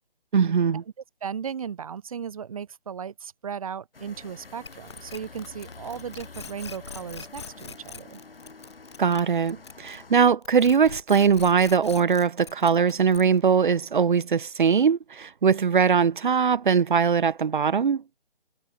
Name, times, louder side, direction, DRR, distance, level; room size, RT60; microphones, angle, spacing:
voice 1, 0.3-0.8 9.0-18.0, right 6 dB, 55° right, 0.4 m, -21 dB
voice 2, 1.2-8.2, right 7 dB, 35° right, 1.7 m, -36 dB
sound 1, 3.9-10.3, left 3 dB, 70° left, 2.4 m, -47 dB
sound 2, 4.6-10.1 10.4-13.5, left 5 dB, 30° left, 0.6 m, -42 dB
figure-of-eight pair, 150°, 30 cm